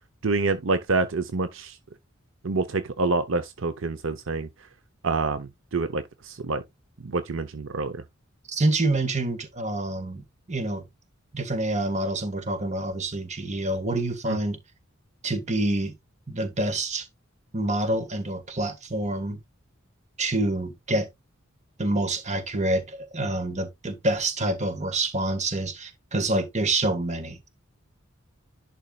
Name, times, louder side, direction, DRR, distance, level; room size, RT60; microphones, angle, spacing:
voice 1, 0.2-1.7 2.4-4.5 5.0-6.6 7.0-8.0 14.3-14.4, right 3 dB, 65° right, 0.8 m, -27 dB
voice 2, 8.5-10.8 11.3-14.6 15.2-15.9 16.3-17.1 17.5-19.4 20.2-21.1 21.8-27.5, right 2 dB, 35° right, 1.6 m, -27 dB
11.0 x 4.5 x 2.4 m
head